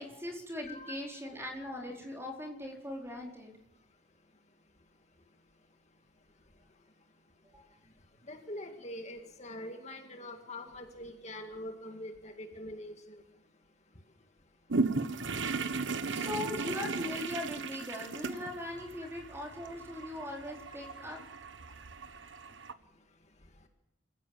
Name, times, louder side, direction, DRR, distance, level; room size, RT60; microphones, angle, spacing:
voice 1, 0.0-3.5 7.5-7.7 16.1-21.2, left 1 dB, 15° right, 1 dB, 4.3 m, -40 dB
voice 2, 8.3-13.2, left 1 dB, 35° left, 5 dB, 2.0 m, -44 dB
sound 1, 14.7-22.7, right 4 dB, 80° right, 1.1 m, -36 dB
26.5 x 16.0 x 7.5 m, 0.87 s
head